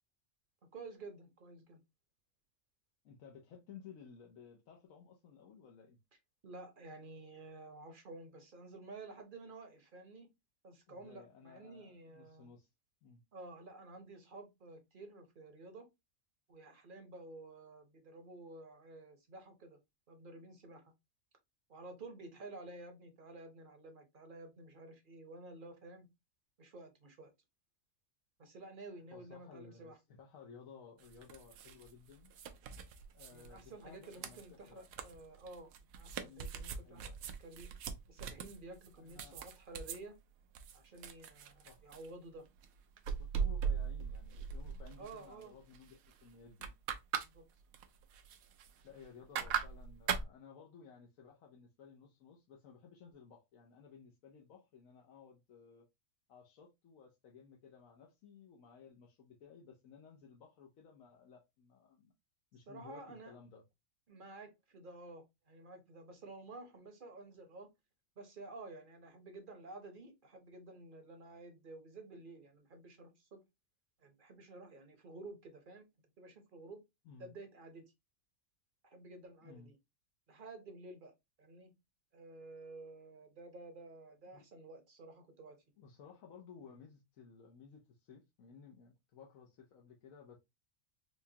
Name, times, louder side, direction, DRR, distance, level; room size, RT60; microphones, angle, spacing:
voice 1, 0.7-1.8 6.4-10.3 10.6-12.5 13.3-15.9 16.5-19.8 20.1-20.9 21.7-26.1 26.6-27.3 28.4-30.0 33.3-37.7 38.1-40.2 40.7-42.4 45.0-45.6 47.2-47.4 62.7-63.3 64.1-67.7 68.2-73.4 74.0-75.9 76.2-76.8 77.2-77.8 78.8-79.8 80.3-81.1 81.4-81.7 82.1-85.6, right 2 dB, 45° right, 0.8 m, -52 dB
voice 2, 3.0-6.0 10.9-12.7 13.0-13.2 29.1-32.3 33.1-34.4 34.7-34.8 36.1-36.5 36.8-37.1 39.0-39.4 41.6-41.9 43.2-46.7 48.8-55.9 56.3-62.1 62.5-63.6 77.0-77.3 79.4-79.7 84.3-84.4 85.8-90.4, left 6 dB, 75° left, 1.2 m, -57 dB
sound 1, 31.0-40.0 40.6-42.1 42.6-45.4 45.7-46.1 46.4-47.3 47.6-49.0 49.4-50.3, right 7 dB, 85° right, 1.0 m, -40 dB
4.7 x 2.3 x 2.7 m
omnidirectional pair, 1.4 m